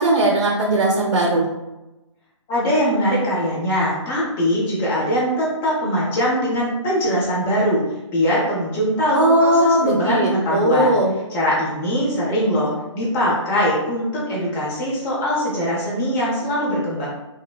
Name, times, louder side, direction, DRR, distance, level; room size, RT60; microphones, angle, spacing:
voice 1, 0.0-1.5 9.1-11.1, right 1 dB, 65° right, -3 dB, 0.5 m, -18 dB
voice 2, 2.5-7.8 8.1-11.0 11.3-17.1, equal, 15° left, -6 dB, 0.5 m, -21 dB
3.1 x 2.0 x 2.2 m, 1.0 s
figure-of-eight pair, 145°, 16 cm